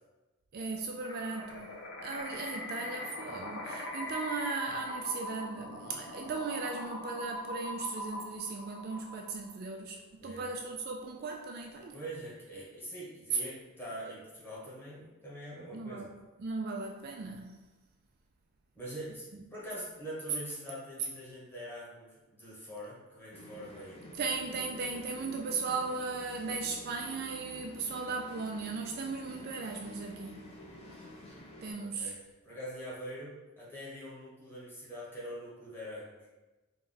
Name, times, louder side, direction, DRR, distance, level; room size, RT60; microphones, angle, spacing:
voice 1, 0.5-12.0 15.7-16.1 16.4-17.7 24.2-30.5 31.6-32.1, right 4 dB, 45° right, 2 dB, 0.3 m, -37 dB
sound 1, 1.0-9.5, left 1 dB, 60° left, 0.9 m, -41 dB
voice 2, 10.2-10.5 11.9-16.1 18.7-19.3 19.5-24.0 31.8-32.2 32.4-36.3, equal, 10° left, -7 dB, 1.2 m, -44 dB
sound 2, 23.3-31.7, left 1 dB, 30° left, 0.6 m, -50 dB
3.9 x 2.3 x 3.9 m, 1.1 s
head